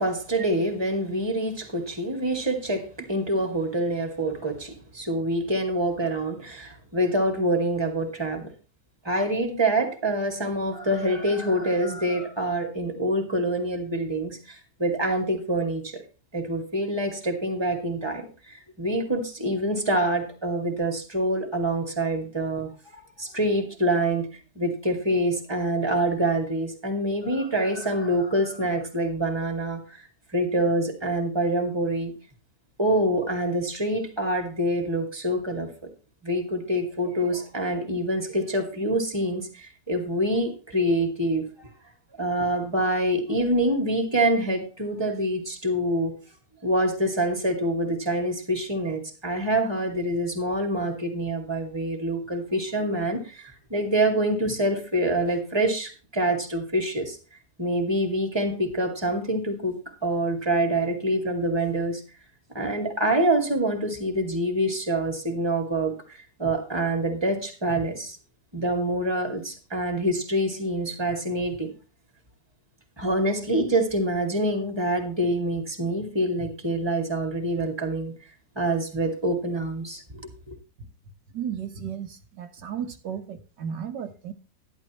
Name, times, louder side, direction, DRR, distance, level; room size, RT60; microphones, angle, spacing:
voice 1, 0.0-8.4 9.0-16.0 16.3-24.3 24.6-30.0 30.3-32.1 32.8-35.7 36.2-41.7 42.2-46.1 46.6-57.2 57.6-62.0 62.5-68.2 68.5-71.7 73.0-78.1 78.6-80.2 80.5-80.6, right 1 dB, 15° right, 2.5 m, -26 dB
voice 2, 81.3-84.3, right 8 dB, 75° right, 1.7 m, -34 dB
12.0 x 11.5 x 3.1 m
omnidirectional pair, 1.9 m